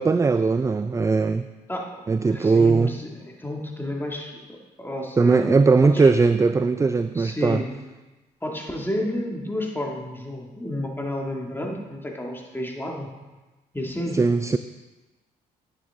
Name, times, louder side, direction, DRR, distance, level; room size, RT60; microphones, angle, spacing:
voice 1, 0.0-1.5 2.1-2.9 5.2-7.6 14.1-14.6, right 4 dB, 15° right, 11 dB, 0.3 m, -19 dB
voice 2, 1.7-6.1 7.1-7.7 8.4-13.1 13.7-14.2, left 1 dB, 10° left, 0 dB, 2.0 m, -31 dB
9.8 x 7.1 x 3.6 m, 1.2 s
hypercardioid pair, 50°, 19 cm